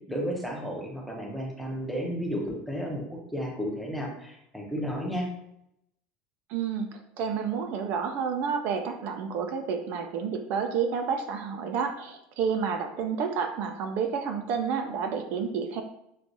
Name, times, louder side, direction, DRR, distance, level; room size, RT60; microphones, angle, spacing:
voice 1, 0.1-3.0 3.3-5.3, equal, ahead, -2 dB, 0.6 m, -32 dB
voice 2, 6.5-15.8, right 6 dB, 45° right, 5 dB, 0.3 m, -30 dB
5.9 x 2.3 x 2.6 m, 0.78 s
cardioid pair, 175°, 4 cm